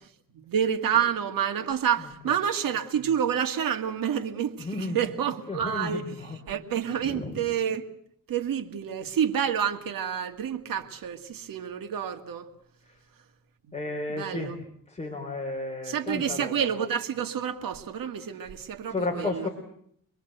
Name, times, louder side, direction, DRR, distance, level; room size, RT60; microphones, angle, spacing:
voice 1, 0.3-7.8 8.3-12.5 13.7-14.6 15.9-19.5, right 8 dB, 80° right, 2.0 m, -29 dB
voice 2, 4.6-5.0 5.5-6.4 7.0-7.4 12.8-13.0 13.7-14.6 14.9-16.5 18.9-19.5, left 2 dB, 20° left, 4.1 m, -33 dB
26.5 x 22.0 x 8.0 m
cardioid pair, 120°, 33 cm